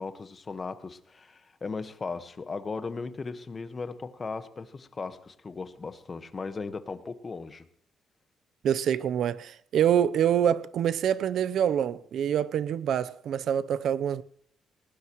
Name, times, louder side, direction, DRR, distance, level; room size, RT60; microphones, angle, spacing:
voice 1, 0.0-7.6, left 4 dB, 35° left, 1.5 m, -37 dB
voice 2, 8.6-14.2, right 9 dB, 70° right, 0.8 m, -26 dB
20.0 x 18.5 x 3.2 m
cardioid pair, 90°, 0 cm